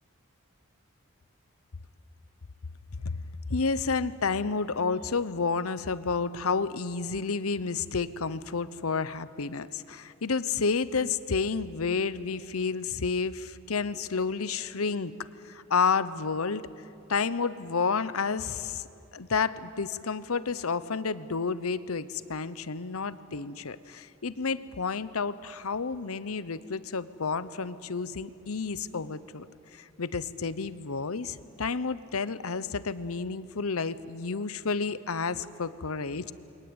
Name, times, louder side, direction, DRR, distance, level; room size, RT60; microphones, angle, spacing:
voice 1, 3.5-16.7 17.1-18.8 19.1-29.5 29.7-36.3, left 4 dB, 90° left, 15 dB, 0.9 m, -30 dB
28.5 x 23.0 x 9.0 m, 2.7 s
head